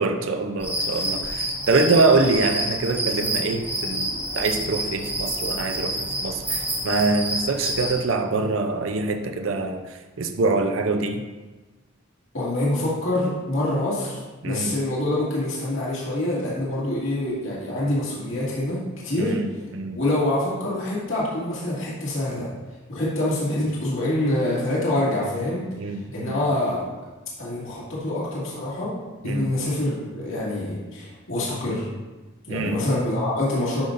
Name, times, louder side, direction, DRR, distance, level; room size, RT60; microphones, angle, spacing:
voice 1, 0.0-11.2 14.4-14.7 19.2-20.0 25.8-26.4 29.2-29.5 32.5-32.8, right 3 dB, 70° right, 6 dB, 0.6 m, -24 dB
sound 1, 0.6-8.0, right 1 dB, 10° right, 1.2 m, -28 dB
voice 2, 12.3-19.4 19.9-22.5 22.9-25.6 26.1-26.9 27.4-28.9 29.2-31.9 32.5-33.8, left 1 dB, 65° left, -7 dB, 2.1 m, -26 dB
11.5 x 5.5 x 2.6 m, 1.2 s
head